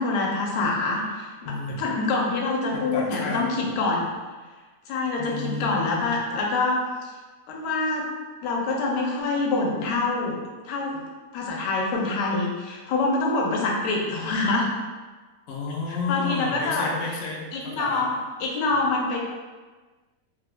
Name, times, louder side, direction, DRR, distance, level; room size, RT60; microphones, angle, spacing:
voice 1, 0.0-1.5 1.8-4.0 4.9-6.8 7.5-8.0 8.4-10.4 10.6-11.0 11.3-14.7 15.9-16.9 17.5-19.2, left 3 dB, 85° left, -1 dB, 1.2 m, -25 dB
voice 2, 1.4-1.9 2.7-3.4 5.2-6.2 15.5-18.1, left 4 dB, 65° left, -3 dB, 0.8 m, -32 dB
3.4 x 2.1 x 2.4 m, 1.3 s
omnidirectional pair, 1.8 m